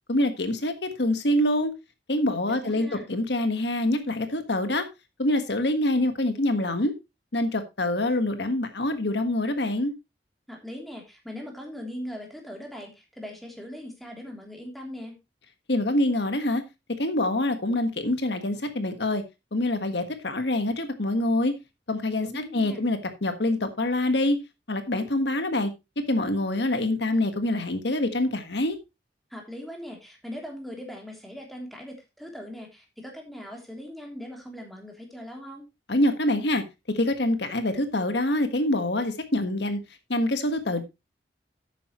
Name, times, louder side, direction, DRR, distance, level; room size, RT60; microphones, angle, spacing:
voice 1, 0.1-1.7 2.1-4.9 5.2-6.9 7.3-9.9 15.7-16.6 17.0-19.2 19.5-21.5 21.9-24.4 24.7-25.7 26.0-28.8 35.9-39.8 40.1-40.8, left 1 dB, 80° left, 1.5 m, -25 dB
voice 2, 2.5-3.1 10.5-15.1 22.2-22.8 29.3-35.6, equal, ahead, 3.1 m, -40 dB
12.0 x 9.2 x 3.1 m
head